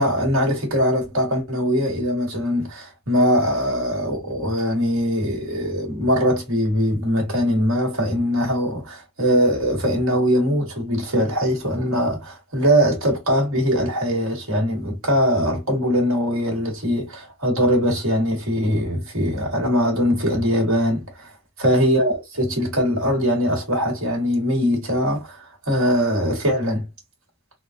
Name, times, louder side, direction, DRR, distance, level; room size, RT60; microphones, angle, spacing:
voice 1, 0.0-21.3 21.6-26.8, equal, 75° right, 1.8 m, -21 dB
3.7 x 2.4 x 2.6 m
head